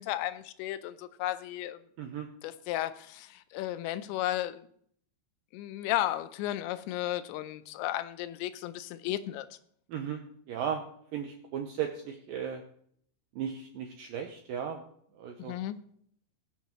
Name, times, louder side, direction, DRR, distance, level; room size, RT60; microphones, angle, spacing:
voice 1, 0.0-1.8 2.4-4.6 5.5-9.5 15.4-15.8, left 14 dB, 85° left, 3.0 m, -34 dB
voice 2, 9.9-10.2 10.5-10.8 11.1-12.6 13.4-14.8 15.2-15.6, right 8 dB, 80° right, 2.0 m, -35 dB
21.0 x 7.5 x 3.1 m
omnidirectional pair, 5.1 m